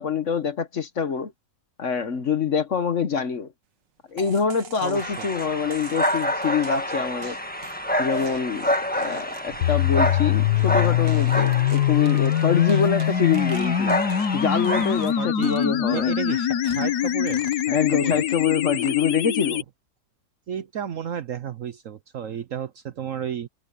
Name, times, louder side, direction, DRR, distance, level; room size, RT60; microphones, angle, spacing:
voice 1, 0.0-1.3 1.8-3.5 4.1-7.4 8.0-14.0 14.3-16.1 17.7-19.6, left 6 dB, 50° left, 1.3 m, -25 dB
sound 1, 4.2-14.4 14.6-15.1 15.4-18.4 18.8-19.3, right 7 dB, 85° right, 2.1 m, -44 dB
voice 2, 4.8-5.3 15.2-18.2 19.5-19.6 20.5-23.5, right 8 dB, 60° right, 1.0 m, -33 dB
sound 2, 5.0-15.2, left 1 dB, 5° left, 1.2 m, -28 dB
sound 3, 9.6-19.6, left 10 dB, 70° left, 1.5 m, -23 dB
omnidirectional pair, 1.9 m